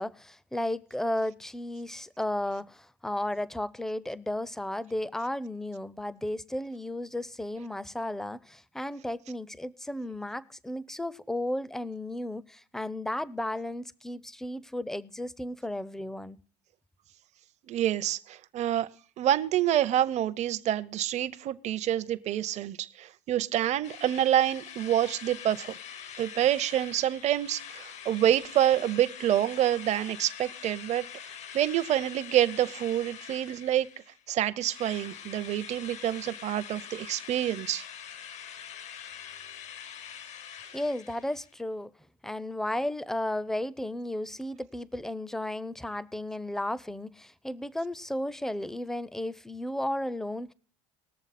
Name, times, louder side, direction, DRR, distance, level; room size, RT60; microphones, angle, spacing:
voice 1, 0.0-16.4 40.7-41.9 42.2-50.5, left 1 dB, 5° left, 0.5 m, -34 dB
voice 2, 17.7-18.9 19.2-25.8 26.2-31.1 31.5-33.9 34.3-37.8, right 12 dB, 50° right, 0.7 m, -27 dB
Drill, 23.8-34.2 34.6-41.5, left 8 dB, 50° left, 0.8 m, -44 dB
19.5 x 6.8 x 4.2 m
supercardioid pair, 95°, 16 cm